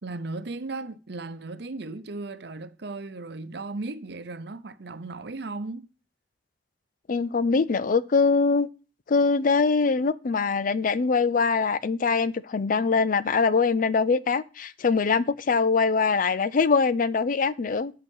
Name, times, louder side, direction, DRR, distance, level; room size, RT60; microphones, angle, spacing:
voice 1, 0.0-5.9, right 3 dB, 65° right, 0.8 m, -36 dB
voice 2, 7.1-8.7 9.1-17.9, left 4 dB, 45° left, 0.5 m, -23 dB
8.1 x 7.7 x 5.4 m
head